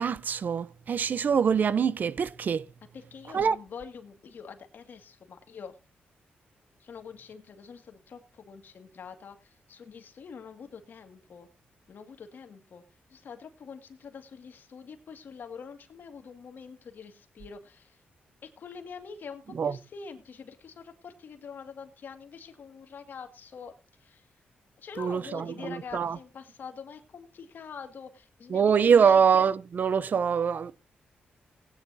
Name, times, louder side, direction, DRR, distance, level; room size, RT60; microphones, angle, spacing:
voice 1, 0.0-2.7 3.3-3.6 19.5-19.8 25.0-26.2 28.5-30.7, right 6 dB, 55° right, 0.6 m, -24 dB
voice 2, 2.9-5.8 6.8-11.5 11.9-12.8 13.1-18.0 18.4-23.7 24.0-24.3 24.8-28.7 29.1-29.2, left 6 dB, 65° left, 2.0 m, -45 dB
19.5 x 9.5 x 2.7 m
cardioid pair, 90°, 4 cm